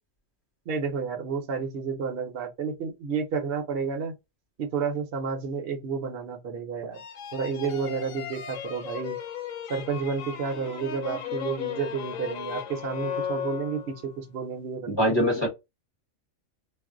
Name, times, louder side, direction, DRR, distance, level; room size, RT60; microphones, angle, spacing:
voice 1, 0.7-4.2 4.6-7.0 7.3-9.2 9.7-15.1, right 5 dB, 55° right, 0.8 m, -31 dB
sound 1, 6.9-14.1, left 8 dB, 75° left, 0.9 m, -36 dB
voice 2, 14.9-15.5, equal, 20° left, 0.9 m, -23 dB
2.5 x 2.1 x 3.6 m
omnidirectional pair, 1.5 m